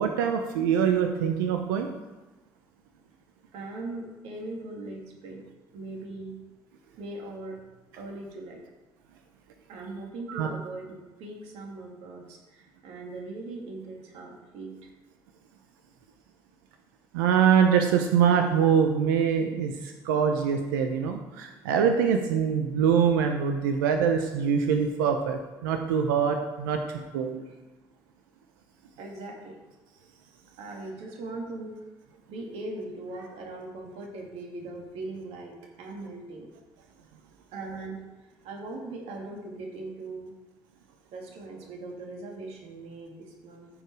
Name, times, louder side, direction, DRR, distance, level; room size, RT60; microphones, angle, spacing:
voice 1, 0.0-1.9 10.3-10.5 17.1-27.4, right 7 dB, 90° right, 5 dB, 0.8 m, -24 dB
voice 2, 3.5-5.4 5.7-6.4 7.0-7.6 7.9-8.6 9.7-14.9 27.5-27.6 29.0-29.6 30.6-31.8 32.3-36.5 37.5-40.3 41.1-43.7, right 2 dB, 75° right, 0 dB, 2.3 m, -40 dB
14.0 x 5.1 x 4.7 m, 1.1 s
hypercardioid pair, 60°, 11 cm